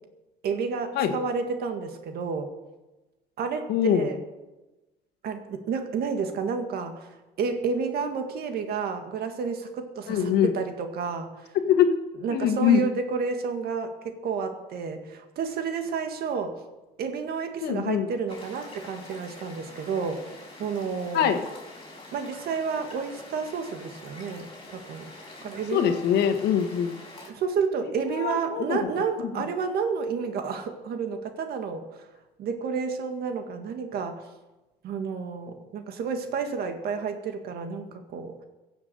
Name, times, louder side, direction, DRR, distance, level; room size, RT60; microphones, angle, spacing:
voice 1, 0.4-2.5 3.4-4.2 5.2-7.1 7.4-11.3 12.2-16.6 17.0-20.3 20.6-21.3 22.1-25.1 25.4-26.0 27.3-32.1 32.4-34.2 34.8-38.3, right 5 dB, 65° right, 6 dB, 1.9 m, -30 dB
voice 2, 3.7-4.1 10.1-10.5 11.5-12.0 12.3-12.8 17.6-18.1 21.1-21.4 25.7-26.9 27.8-28.9, left 8 dB, 75° left, 8 dB, 1.5 m, -23 dB
sound 1, 18.3-27.3, left 2 dB, 30° left, 4.8 m, -46 dB
16.0 x 7.3 x 6.9 m, 1.1 s
cardioid pair, 110°, 17 cm